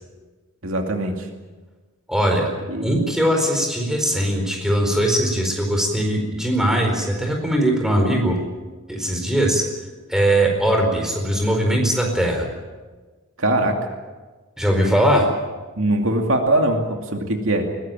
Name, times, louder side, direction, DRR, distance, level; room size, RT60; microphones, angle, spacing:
voice 1, 0.6-1.3 2.7-2.9 13.4-13.8 15.8-17.8, right 1 dB, 65° right, 3 dB, 2.5 m, -21 dB
voice 2, 2.1-2.5 2.8-8.4 8.9-9.6 10.1-12.5 14.6-15.3, right 1 dB, ahead, 2 dB, 4.4 m, -20 dB
21.5 x 20.0 x 9.1 m, 1.3 s
head